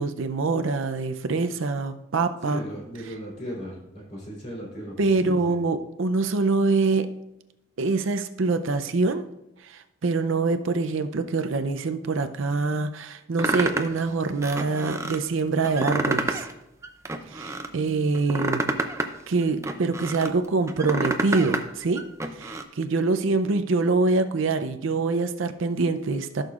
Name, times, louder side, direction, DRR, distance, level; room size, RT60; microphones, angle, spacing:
voice 1, 0.0-2.6 3.1-3.2 5.0-7.1 7.8-9.3 9.6-16.4 17.3-18.7 19.3-22.0 22.4-26.4, right 3 dB, 70° right, 9 dB, 0.5 m, -25 dB
voice 2, 2.4-5.5, equal, 35° left, -4 dB, 3.3 m, -37 dB
sound 1, 13.4-14.0 14.4-15.2 15.6-16.5 16.8-17.7 18.1-20.3 20.7-21.6 22.0-22.6, right 2 dB, 15° right, 0.5 m, -28 dB
14.5 x 6.6 x 2.4 m, 0.89 s
head